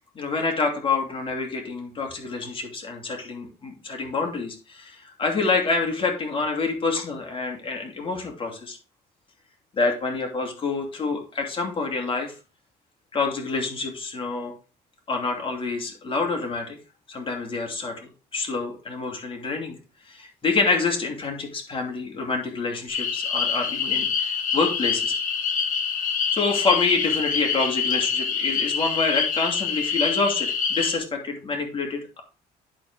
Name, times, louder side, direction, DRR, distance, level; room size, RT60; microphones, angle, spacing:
voice 1, 0.1-8.8 9.7-12.3 13.1-14.5 15.1-16.8 17.1-19.7 20.1-25.1 26.3-32.2, left 4 dB, 30° left, 2 dB, 2.8 m, -27 dB
sound 1, 22.9-31.0, left 6 dB, 50° left, 1.5 m, -26 dB
10.5 x 4.5 x 4.7 m, 0.34 s
cardioid pair, 110°, 17 cm